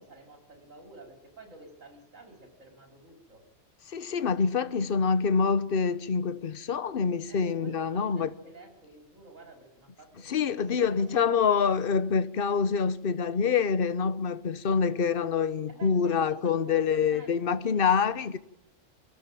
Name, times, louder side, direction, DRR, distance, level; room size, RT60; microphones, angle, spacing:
voice 1, 0.0-3.5 7.3-11.2 15.7-18.2, right 2 dB, 85° right, 5.1 m, -51 dB
voice 2, 3.9-8.3 10.2-18.4, left 6 dB, 50° left, 1.1 m, -26 dB
24.5 x 14.0 x 9.0 m
omnidirectional pair, 1.3 m